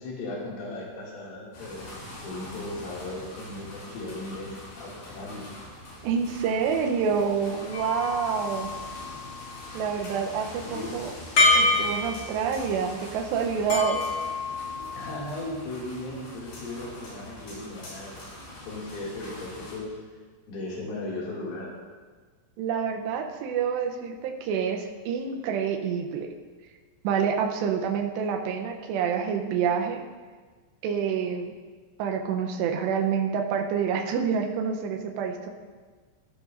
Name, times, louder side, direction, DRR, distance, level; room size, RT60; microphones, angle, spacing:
voice 1, 0.0-5.5 10.6-11.0 14.9-18.2 18.6-20.0 20.5-21.8, left 2 dB, 85° left, -5 dB, 4.9 m, -37 dB
sound 1, 1.5-19.7, left 1 dB, 55° left, 5.6 m, -43 dB
voice 2, 6.0-8.7 9.7-11.1 11.5-14.0 22.6-26.3 27.0-30.0 30.8-31.6 32.0-35.5, right 7 dB, 75° right, 3 dB, 2.7 m, -27 dB
sound 2, 7.7-9.4 11.4-12.6 13.7-15.2, left 2 dB, 40° left, 2.3 m, -26 dB
15.5 x 11.5 x 2.6 m, 1.4 s
omnidirectional pair, 5.6 m